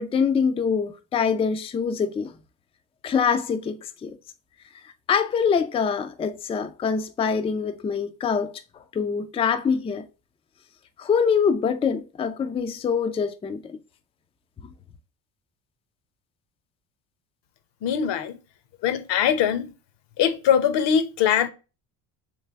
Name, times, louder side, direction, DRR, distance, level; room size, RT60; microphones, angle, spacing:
voice 1, 0.0-2.3 3.0-4.1 5.1-8.5 8.9-10.0 11.0-13.6, left 6 dB, 15° left, 0.3 m, -24 dB
voice 2, 17.8-18.4 18.8-19.7 20.2-21.5, left 8 dB, 60° left, 0.8 m, -22 dB
3.3 x 3.2 x 3.3 m
supercardioid pair, 70°, 48 cm